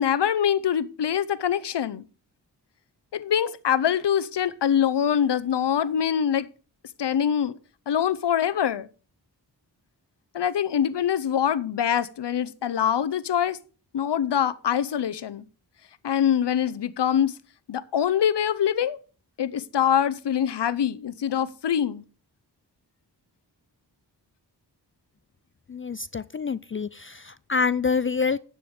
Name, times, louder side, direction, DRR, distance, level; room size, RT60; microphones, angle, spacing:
voice 1, 0.0-2.0 3.1-6.5 7.0-7.6 7.9-8.9 10.3-13.6 13.9-15.4 16.0-17.3 17.7-19.0 19.4-22.0, left 9 dB, 75° left, 0.7 m, -24 dB
voice 2, 25.7-28.4, left 5 dB, 30° left, 0.4 m, -27 dB
10.5 x 7.0 x 4.9 m
cardioid pair, 45°, 42 cm